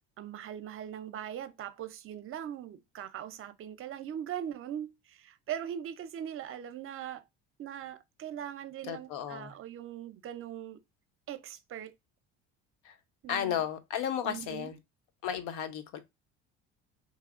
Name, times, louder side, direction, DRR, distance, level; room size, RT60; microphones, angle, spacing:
voice 1, 0.2-7.2 7.6-10.8 11.3-11.9 13.2-13.6 14.2-14.7, right 10 dB, 45° right, 0.6 m, -40 dB
voice 2, 8.8-9.5 12.8-12.9 13.3-14.8 15.2-16.0, left 9 dB, 75° left, 0.8 m, -34 dB
3.1 x 2.8 x 2.4 m
supercardioid pair, 90°, 31 cm